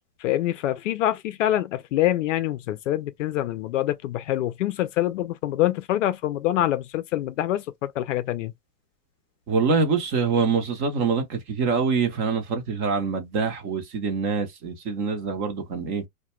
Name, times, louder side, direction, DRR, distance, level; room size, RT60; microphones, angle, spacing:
voice 1, 0.2-8.5, left 13 dB, 55° left, 0.5 m, -25 dB
voice 2, 9.5-16.0, right 5 dB, 25° right, 0.6 m, -25 dB
2.2 x 2.2 x 3.0 m
hypercardioid pair, 125°, 47 cm